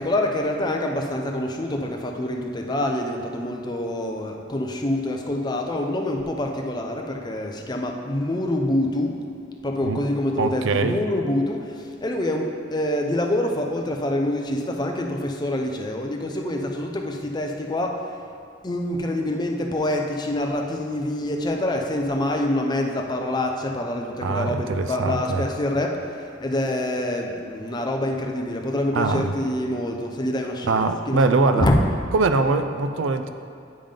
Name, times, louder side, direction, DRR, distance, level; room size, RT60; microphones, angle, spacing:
voice 1, 0.0-9.2 9.6-18.0 18.6-31.2 31.5-31.8, left 1 dB, 20° left, 2 dB, 0.5 m, -26 dB
voice 2, 10.4-11.0 24.2-25.5 28.9-29.4 30.7-31.7 32.1-33.3, right 3 dB, 70° right, 8 dB, 0.4 m, -22 dB
8.8 x 3.7 x 5.1 m, 2.4 s
head